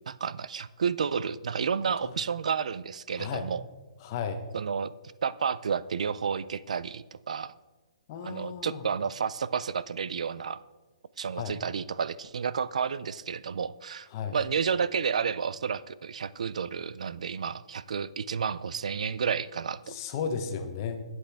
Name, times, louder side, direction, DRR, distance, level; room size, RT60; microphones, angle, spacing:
voice 1, 0.1-3.6 4.5-4.9 5.2-7.5 8.2-10.6 11.2-19.9, right 6 dB, 75° right, 18 dB, 0.4 m, -31 dB
voice 2, 4.0-4.4 8.1-8.8 11.3-11.5 14.1-14.4 19.9-21.0, left 6 dB, 30° left, 7 dB, 0.9 m, -34 dB
11.5 x 7.8 x 3.4 m, 1.2 s
hypercardioid pair, 160°, 4 cm